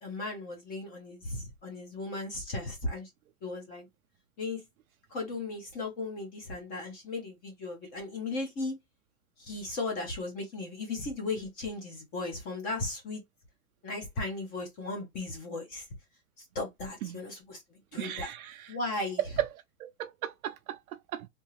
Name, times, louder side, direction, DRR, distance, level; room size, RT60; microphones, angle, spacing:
voice 1, 0.0-3.1 3.4-3.9 4.4-4.6 5.1-8.8 9.4-13.2 13.8-15.9 16.4-18.3 18.7-19.2, left 2 dB, 20° left, 0.8 m, -36 dB
voice 2, 18.0-18.8 19.4-19.5 19.8-21.3, right 12 dB, 65° right, 0.5 m, -36 dB
3.5 x 2.9 x 2.9 m
hypercardioid pair, 160°, 46 cm